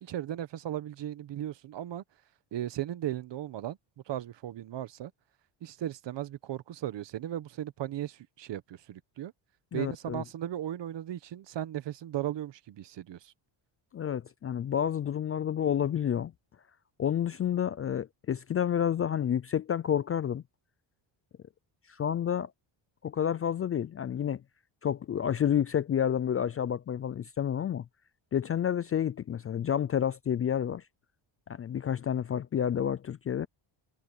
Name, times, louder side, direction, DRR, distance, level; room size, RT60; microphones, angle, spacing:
voice 1, 0.0-2.0 2.5-3.8 4.1-5.1 5.6-9.3 9.7-13.3, right 12 dB, 60° right, 1.3 m, -36 dB
voice 2, 9.7-10.2 13.9-16.3 17.0-20.4 21.9-22.5 23.0-24.4 24.8-27.9 28.3-30.8 31.5-33.5, left 9 dB, 30° left, 0.3 m, -29 dB
cardioid pair, 120°, 48 cm